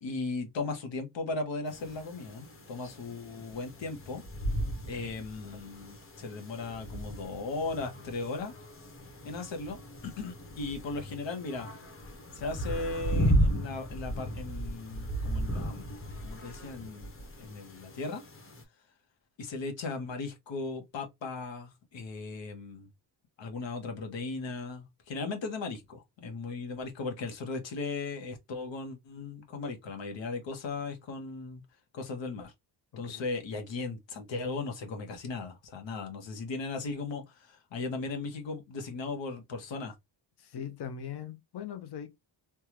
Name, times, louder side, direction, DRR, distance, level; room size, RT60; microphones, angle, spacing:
voice 1, 0.0-4.2 4.9-8.5 9.2-11.7 12.3-15.9 16.2-17.1 17.4-18.2 19.4-22.9 23.4-31.6 31.9-32.5 33.0-39.9, left 3 dB, 85° left, 1.2 m, -37 dB
sound 1, 1.7-18.6, equal, 30° left, 0.9 m, -35 dB
voice 2, 40.4-42.2, left 8 dB, 60° left, 0.8 m, -40 dB
3.4 x 2.3 x 2.9 m
wide cardioid pair, 115°, 44 cm